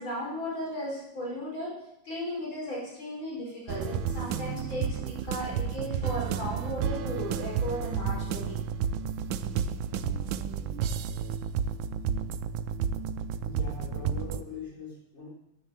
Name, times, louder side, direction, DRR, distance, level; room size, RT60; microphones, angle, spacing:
voice 1, 0.0-1.7 2.0-8.6, left 1 dB, 85° left, -4 dB, 5.5 m, -36 dB
sound 1, 3.7-14.4, right 7 dB, 85° right, 1.5 m, -31 dB
voice 2, 13.4-15.3, left 3 dB, 35° left, -4 dB, 4.6 m, -41 dB
11.5 x 9.3 x 7.6 m, 0.84 s
omnidirectional pair, 2.1 m